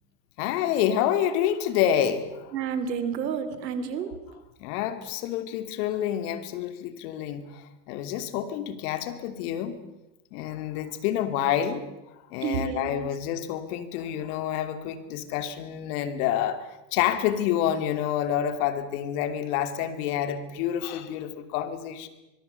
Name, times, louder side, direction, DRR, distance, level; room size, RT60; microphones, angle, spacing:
voice 1, 0.4-2.5 4.6-9.8 10.3-11.9 12.3-16.6 16.9-22.1, left 10 dB, 65° left, 10 dB, 2.9 m, -28 dB
voice 2, 2.5-4.1 12.4-13.1, right 7 dB, 85° right, 11 dB, 3.2 m, -30 dB
25.0 x 22.5 x 6.9 m, 0.99 s
hypercardioid pair, 95°, 49 cm